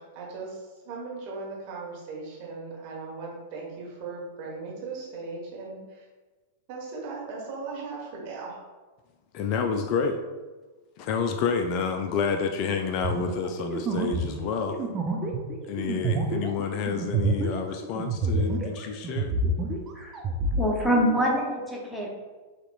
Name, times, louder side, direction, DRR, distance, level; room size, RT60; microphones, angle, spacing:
voice 1, 0.0-6.1 6.7-8.6, right 4 dB, 45° right, -3 dB, 1.4 m, -38 dB
voice 2, 9.3-10.2 11.0-14.8 15.6-19.3, left 5 dB, 40° left, 5 dB, 0.4 m, -29 dB
sound 1, 13.0-18.8 19.0-20.7, right 2 dB, 25° right, 0.6 m, -28 dB
voice 3, 20.6-22.1, equal, 5° left, -2 dB, 0.9 m, -25 dB
6.4 x 2.9 x 2.4 m, 1.3 s
figure-of-eight pair, 95°, 0 cm